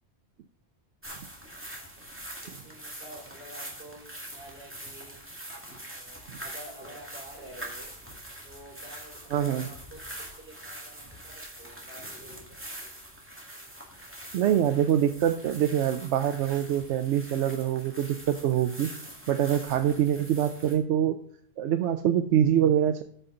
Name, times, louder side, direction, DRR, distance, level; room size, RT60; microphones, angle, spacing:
sound 1, 1.0-20.8, right 1 dB, 10° right, 2.0 m, -44 dB
voice 1, 2.4-5.2 5.9-7.9 8.4-12.8, right 1 dB, 50° right, -3 dB, 4.9 m, -49 dB
voice 2, 9.3-9.7 14.3-18.9 19.3-21.2 21.6-23.0, right 10 dB, 90° right, 8 dB, 0.9 m, -25 dB
13.5 x 5.6 x 3.8 m, 0.64 s
omnidirectional pair, 1.2 m